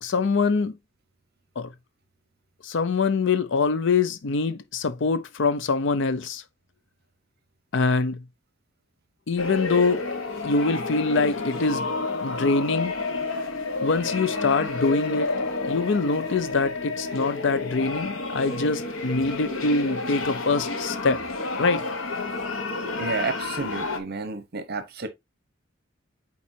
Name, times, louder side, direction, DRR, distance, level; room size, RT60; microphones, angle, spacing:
voice 1, 0.0-0.7 1.6-1.7 2.6-6.4 7.7-8.2 9.3-10.0 10.4-11.9 12.2-12.9 13.8-15.3 15.6-21.2 21.6-21.8, left 4 dB, 65° left, 0.5 m, -24 dB
sound 1, 9.4-24.0, left 3 dB, 85° left, 1.2 m, -30 dB
voice 2, 23.0-25.1, right 4 dB, 55° right, 1.0 m, -31 dB
8.5 x 4.2 x 2.7 m
head